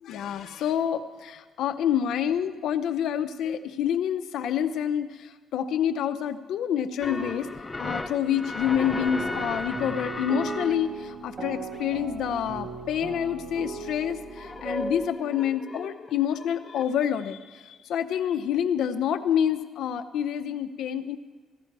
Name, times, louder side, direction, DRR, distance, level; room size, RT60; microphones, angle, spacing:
voice 1, 0.0-5.1 5.5-7.5 7.8-21.2, left 9 dB, 80° left, 8 dB, 0.7 m, -27 dB
sound 1, 7.0-10.8 11.7-11.8 12.4-12.5 14.4-16.8, left 2 dB, 25° left, 0.8 m, -35 dB
sound 2, 8.6-15.1, right 3 dB, 40° right, 1.4 m, -37 dB
15.5 x 11.5 x 4.7 m, 1.4 s
cardioid pair, 90°, 0 cm